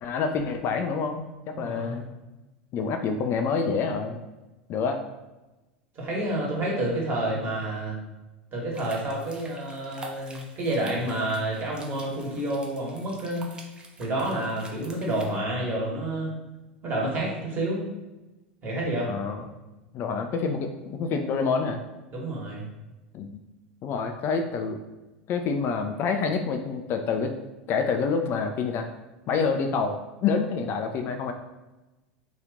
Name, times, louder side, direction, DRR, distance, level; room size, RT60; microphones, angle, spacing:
voice 1, 0.0-2.0 2.7-4.2 4.7-5.0 19.0-19.5 19.9-21.8 23.1-23.3 23.8-24.8 25.3-27.3 27.7-28.9 29.3-31.3, left 5 dB, 40° left, 5 dB, 0.3 m, -27 dB
voice 2, 1.5-2.0 5.9-8.0 8.5-13.4 14.0-16.3 16.8-17.9 18.6-19.1 22.1-22.6, right 1 dB, 35° right, -3 dB, 1.4 m, -29 dB
sound 1, 8.7-15.4, right 2 dB, 15° right, 0.6 m, -47 dB
2.9 x 2.4 x 3.5 m, 1.1 s
hypercardioid pair, 85°, 6 cm